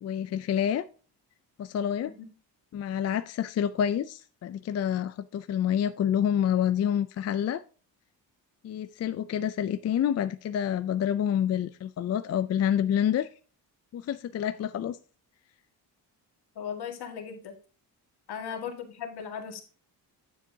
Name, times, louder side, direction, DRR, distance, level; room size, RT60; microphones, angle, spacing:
voice 1, 0.0-0.8 1.6-2.1 2.7-7.6 8.6-13.3 13.9-15.0 18.5-18.6, left 9 dB, 40° left, 0.4 m, -28 dB
voice 2, 16.6-17.5 18.3-19.6, left 7 dB, 70° left, 2.1 m, -37 dB
9.4 x 7.3 x 2.8 m
cardioid pair, 115°, 40 cm